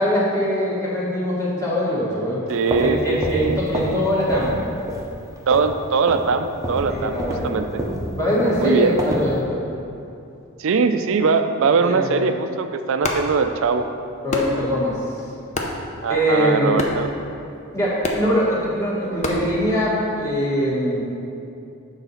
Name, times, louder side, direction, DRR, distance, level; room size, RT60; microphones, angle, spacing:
voice 1, 0.0-2.4 2.8-4.6 6.9-7.5 8.1-9.6 11.8-12.3 14.2-15.0 16.1-16.7 17.7-21.0, equal, 15° left, -7 dB, 1.7 m, -22 dB
sound 1, 2.5-4.0 4.3-4.6 4.9-5.8 6.1-6.3 6.6-9.3, right 1 dB, 15° right, 0.6 m, -28 dB
voice 2, 2.5-3.6 5.5-7.8 8.6-9.0 10.6-13.9 16.0-17.1, right 5 dB, 60° right, 8 dB, 0.4 m, -21 dB
sound 2, 12.9-20.3, left 2 dB, 30° left, 0.6 m, -31 dB
8.1 x 4.0 x 5.6 m, 2.7 s
head